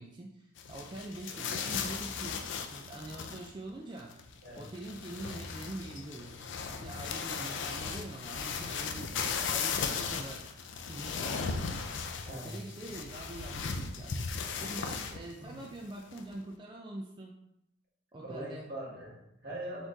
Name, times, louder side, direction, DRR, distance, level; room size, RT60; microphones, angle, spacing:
voice 1, 0.0-4.2 4.6-6.4 6.7-10.5 10.9-11.8 12.3-14.2 14.6-17.3 18.1-18.7, right 1 dB, 20° right, -1 dB, 0.3 m, -44 dB
sound 1, 0.6-3.7 4.0-15.3 15.7-15.8 16.1-16.3, left 5 dB, 60° left, 0.4 m, -37 dB
voice 2, 7.2-7.6 12.2-12.5 15.4-15.6 18.2-19.9, right 1 dB, 50° right, -5 dB, 1.5 m, -42 dB
4.1 x 3.1 x 3.8 m, 0.82 s
head